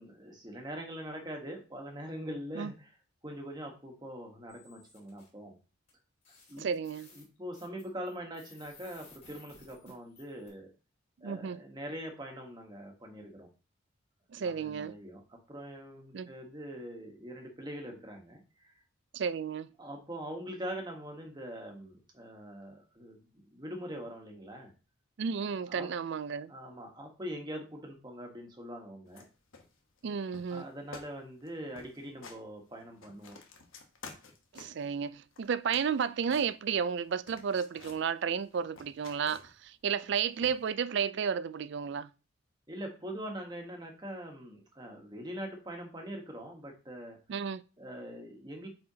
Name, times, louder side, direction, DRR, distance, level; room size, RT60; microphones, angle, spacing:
voice 1, 0.0-2.9 3.2-5.6 6.5-6.7 7.1-10.7 11.2-13.5 14.4-18.7 19.8-24.7 25.7-25.9 26.5-29.2 30.5-33.4 42.7-47.2 47.8-48.7, equal, 20° right, 1.2 m, -43 dB
sound 1, 4.5-5.3 5.9-6.0 6.2-10.5, left 4 dB, 35° left, 2.4 m, -58 dB
voice 2, 6.6-7.1 11.2-11.6 14.3-14.9 16.1-16.3 19.1-19.7 25.2-26.5 30.0-30.7 34.5-42.1 47.3-47.6, right 6 dB, 55° right, 0.3 m, -32 dB
sound 2, 29.1-29.3 29.5-30.1 30.3-30.6 30.9-31.1 31.4-31.5 31.7-32.4 32.8-34.9 35.3-37.0 37.3-38.0 38.4-39.7 40.4-40.7, left 4 dB, 70° left, 1.1 m, -51 dB
8.5 x 4.2 x 2.8 m
head